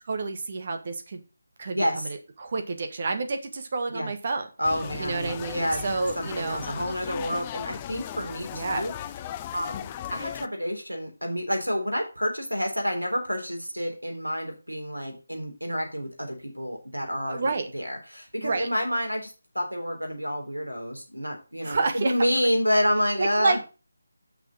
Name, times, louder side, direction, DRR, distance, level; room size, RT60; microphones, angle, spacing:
voice 1, 0.1-1.2 1.6-4.5 5.0-6.7 8.5-8.8 17.3-17.7 18.4-18.7 21.6-22.1 23.2-23.6, right 3 dB, 40° right, 6 dB, 1.4 m, -29 dB
voice 2, 1.7-2.1 3.9-4.1 4.6-8.9 9.5-23.6, equal, 90° right, 3 dB, 3.6 m, -29 dB
sound 1, 4.6-10.5, left 11 dB, 20° left, 0.3 m, -37 dB
6.6 x 6.2 x 6.3 m, 0.33 s
figure-of-eight pair, 155°, 0 cm